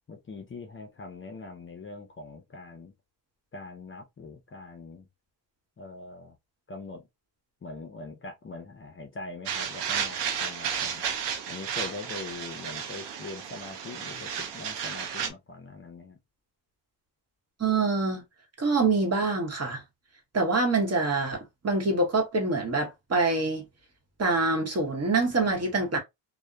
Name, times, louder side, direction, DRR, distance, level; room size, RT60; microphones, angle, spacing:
voice 1, 0.1-2.9 3.5-5.0 5.8-6.3 6.7-7.0 7.6-11.0 11.5-16.2, left 3 dB, 30° left, 0.5 m, -42 dB
sound 1, 9.5-15.3, right 7 dB, 75° right, 0.6 m, -33 dB
voice 2, 17.6-18.2 18.6-19.8 20.3-23.6 24.2-26.0, right 3 dB, 35° right, 0.9 m, -25 dB
2.8 x 2.1 x 2.2 m
cardioid pair, 110°, 42 cm